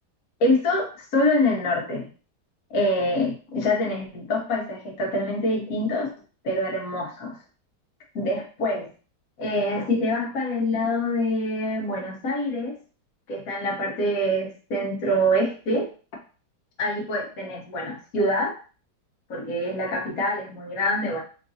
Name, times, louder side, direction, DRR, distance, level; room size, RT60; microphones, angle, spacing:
voice 1, 0.4-2.1 2.7-6.1 6.4-7.4 8.1-8.9 9.4-12.8 13.3-15.9 16.8-18.5 19.3-21.2, left 1 dB, 60° left, 0 dB, 1.3 m, -25 dB
3.9 x 2.5 x 2.6 m, 0.37 s
omnidirectional pair, 1.9 m